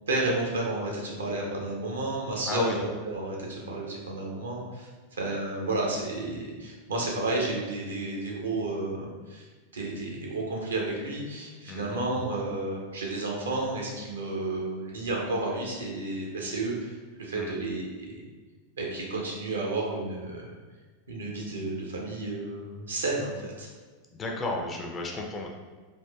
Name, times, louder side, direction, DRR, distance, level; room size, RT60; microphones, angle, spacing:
voice 1, 0.1-9.5 9.7-18.2 18.8-20.5 21.1-23.7, right 2 dB, 70° right, -2 dB, 0.7 m, -32 dB
voice 2, 2.5-2.8 11.6-12.0 17.3-17.6 24.1-25.5, left 2 dB, 25° left, 1 dB, 0.4 m, -33 dB
3.5 x 2.4 x 2.3 m, 1.4 s
figure-of-eight pair, 90°, 0 cm